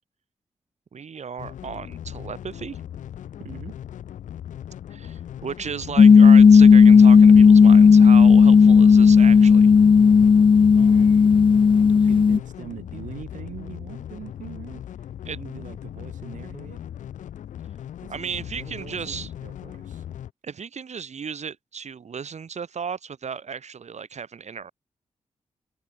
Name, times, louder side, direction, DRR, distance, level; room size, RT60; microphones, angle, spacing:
voice 1, 0.9-2.8 4.9-9.7 15.3-15.4 18.1-19.3 20.4-24.7, right 6 dB, 65° right, 3.5 m, -35 dB
sound 1, 1.4-20.3, left 10 dB, 85° left, 2.0 m, -38 dB
voice 2, 3.4-3.8 10.8-16.9 18.0-20.0, right 9 dB, 85° right, 2.7 m, -43 dB
sound 2, 6.0-12.4, left 5 dB, 40° left, 0.5 m, -12 dB
supercardioid pair, 45°, 13 cm